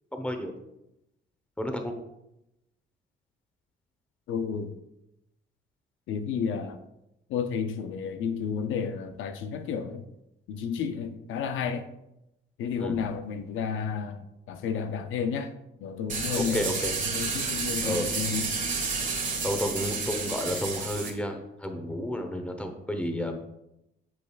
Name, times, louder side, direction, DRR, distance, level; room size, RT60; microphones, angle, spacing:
voice 1, 0.1-0.5 1.6-1.9 12.8-13.0 16.3-16.9 17.8-18.1 19.4-23.5, left 1 dB, 5° left, 5 dB, 1.0 m, -31 dB
voice 2, 4.3-4.7 6.1-6.8 7.3-10.1 10.5-11.9 12.6-15.5 15.8-18.5, left 6 dB, 80° left, 8 dB, 0.6 m, -32 dB
sound 1, 16.1-21.1, right 4 dB, 40° right, 1.5 m, -30 dB
8.6 x 6.0 x 2.4 m, 0.86 s
cardioid pair, 90°, 20 cm